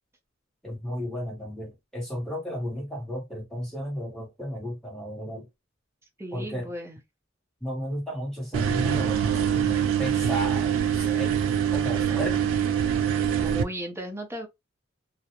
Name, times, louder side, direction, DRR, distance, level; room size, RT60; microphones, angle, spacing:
voice 1, 0.6-5.5 6.3-6.7 7.6-11.4 11.7-12.4, equal, 5° left, 1.2 m, -34 dB
voice 2, 6.2-7.0 13.0-14.5, equal, 15° right, 0.6 m, -36 dB
sound 1, 8.5-13.6, right 8 dB, 80° right, 0.4 m, -24 dB
2.3 x 2.0 x 2.8 m
head